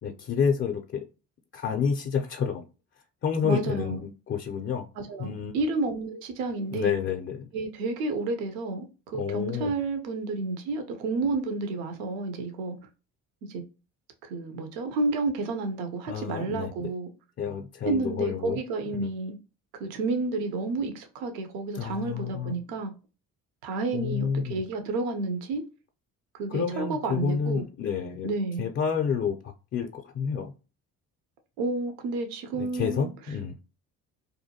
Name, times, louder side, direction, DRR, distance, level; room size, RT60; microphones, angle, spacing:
voice 1, 0.0-1.1 1.5-2.6 3.2-4.9 5.2-5.6 6.7-7.5 9.1-9.7 16.1-16.9 17.4-18.6 18.9-19.1 21.7-22.5 23.9-24.6 26.5-28.3 28.6-30.5 32.5-33.5, left 6 dB, 30° left, 0.4 m, -29 dB
voice 2, 3.4-4.0 5.0-6.9 7.5-12.8 13.5-13.6 14.2-17.1 17.9-19.4 19.7-22.9 23.6-25.6 26.3-27.7 28.2-28.6 31.6-33.1, right 3 dB, 80° right, 0.6 m, -30 dB
2.7 x 2.1 x 2.7 m
hypercardioid pair, 55°, 42 cm